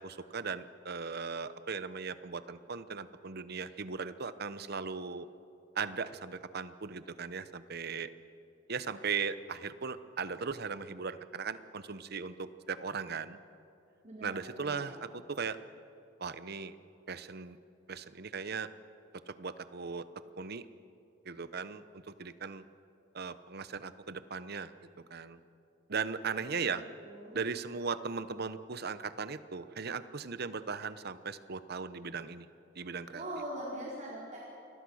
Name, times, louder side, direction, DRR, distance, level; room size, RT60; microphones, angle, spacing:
voice 1, 0.0-5.3 5.7-8.1 8.7-13.4 14.2-15.6 16.2-16.7 17.1-17.6 17.9-18.7 19.3-20.0 20.4-20.6 21.2-22.6 23.1-24.7 25.1-25.4 25.9-26.8 27.3-32.5 32.7-33.2, right 5 dB, 55° right, 13 dB, 0.9 m, -38 dB
voice 2, 14.0-14.9 26.4-27.4 33.1-34.4, right 1 dB, 40° right, -6 dB, 4.3 m, -43 dB
28.0 x 21.5 x 6.4 m, 2.6 s
head